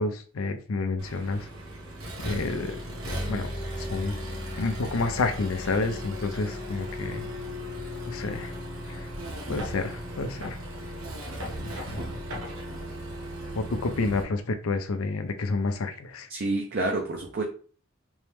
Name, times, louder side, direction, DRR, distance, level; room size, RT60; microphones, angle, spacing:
voice 1, 0.0-1.5 2.2-2.8 3.3-3.5 3.9-4.1 4.6-7.2 8.1-8.5 9.5-10.6 11.6-12.1 13.5-16.3, left 3 dB, 85° left, 7 dB, 0.6 m, -29 dB
Accelerating revving vroom, 1.0-14.2, equal, 85° right, 1.2 m, -36 dB
voice 2, 16.3-17.4, right 2 dB, 50° right, 1 dB, 0.6 m, -28 dB
3.6 x 3.1 x 3.4 m, 0.41 s
head